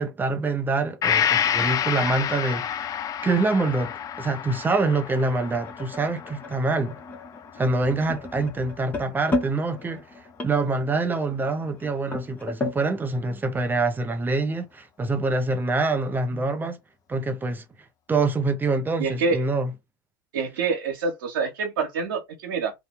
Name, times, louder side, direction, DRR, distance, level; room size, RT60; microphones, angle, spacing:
voice 1, 0.0-2.7 3.2-3.9 4.2-7.0 7.6-10.0 10.4-16.8 17.1-17.6 18.1-19.7, right 3 dB, 15° right, 0.6 m, -25 dB
Gong, 1.0-8.7 9.0-9.1, left 9 dB, 30° left, 0.4 m, -29 dB
sound 1, 3.1-12.8, left 2 dB, 15° left, 1.0 m, -35 dB
voice 2, 19.0-19.5 20.3-22.7, right 4 dB, 80° right, 0.9 m, -26 dB
2.6 x 2.2 x 3.5 m
hypercardioid pair, 90°, 11 cm